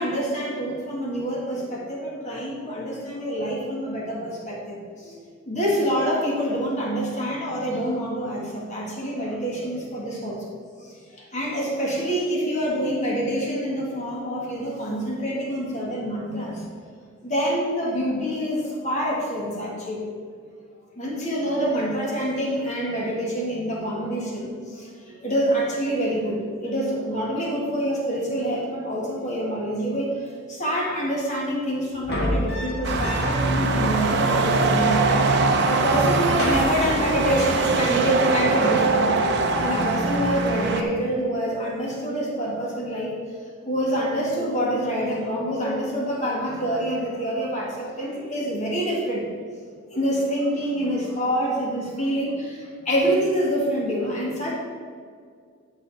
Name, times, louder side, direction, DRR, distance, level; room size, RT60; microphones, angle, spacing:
voice 1, 0.0-5.2 5.5-10.4 10.8-16.7 17.2-20.0 21.0-49.3 49.9-54.5, equal, 35° left, -4 dB, 2.0 m, -26 dB
sound 1, 31.9-33.5 33.8-33.9 34.1-35.1 35.4-35.8 36.1-37.5 38.8-39.1, left 1 dB, 50° left, 2.0 m, -31 dB
sound 2, 32.8-40.8, right 3 dB, 50° right, 0.7 m, -22 dB
11.0 x 5.3 x 4.2 m, 2.1 s
head